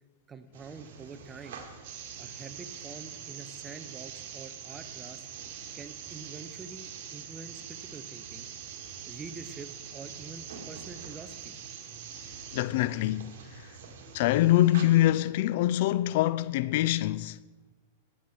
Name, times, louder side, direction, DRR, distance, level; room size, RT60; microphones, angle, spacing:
voice 1, 0.3-1.6 2.2-5.3 5.7-8.5 9.0-11.5, right 4 dB, 15° right, 0.8 m, -46 dB
sound 1, 0.5-15.1, right 4 dB, 70° right, 2.0 m, -49 dB
sound 2, 1.8-12.6, right 9 dB, 55° right, 1.4 m, -44 dB
voice 2, 12.5-13.3 14.1-17.4, left 14 dB, 60° left, 0.3 m, -24 dB
17.5 x 7.4 x 4.4 m
hypercardioid pair, 130°, 0 cm